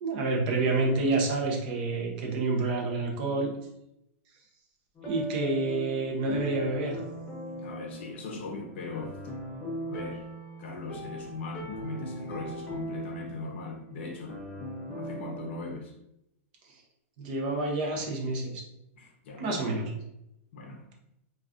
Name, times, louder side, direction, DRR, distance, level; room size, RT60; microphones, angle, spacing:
voice 1, 0.0-3.5 5.0-7.0 17.2-18.6 19.4-19.9, right 3 dB, 35° right, 0 dB, 0.5 m, -28 dB
sound 1, 4.9-15.6, equal, 15° left, 0.4 m, -39 dB
voice 2, 7.6-9.2 9.9-10.2 10.6-14.4 14.9-15.9 18.9-19.5 20.5-20.8, left 3 dB, 50° left, 1 dB, 0.6 m, -39 dB
2.3 x 2.3 x 3.5 m, 0.83 s
supercardioid pair, 175°, 8 cm